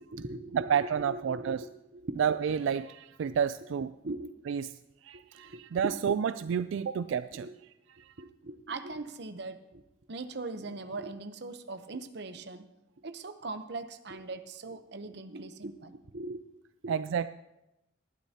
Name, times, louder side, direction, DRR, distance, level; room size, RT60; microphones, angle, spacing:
voice 1, 0.0-2.2 3.2-3.4 4.0-4.3 5.4-5.9 6.4-6.5 7.4-7.5 8.2-9.8 10.1-12.6 13.0-16.4 16.8-17.0, right 2 dB, 60° right, 9 dB, 0.8 m, -40 dB
voice 2, 0.5-1.6 2.2-3.9 4.5-4.7 5.0-7.5 8.1-8.2 16.9-17.3, right 7 dB, 85° right, 13 dB, 0.3 m, -30 dB
19.0 x 12.5 x 2.8 m, 0.91 s
head